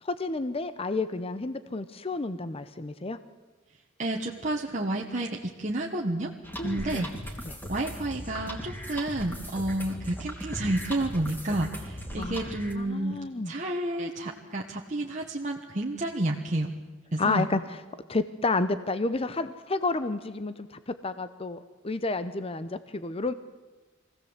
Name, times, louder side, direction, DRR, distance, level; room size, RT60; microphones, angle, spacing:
voice 1, 0.0-3.2 6.6-7.1 7.4-7.6 12.2-13.5 17.2-17.8 18.1-23.3, left 3 dB, 30° left, 12 dB, 0.7 m, -31 dB
voice 2, 4.0-6.3 6.6-7.1 7.7-13.2 13.5-16.7 17.1-17.5, right 1 dB, 40° right, -1 dB, 1.4 m, -30 dB
sound 1, 6.4-12.7, equal, 10° left, 2.9 m, -38 dB
23.5 x 16.5 x 8.1 m, 1.3 s
head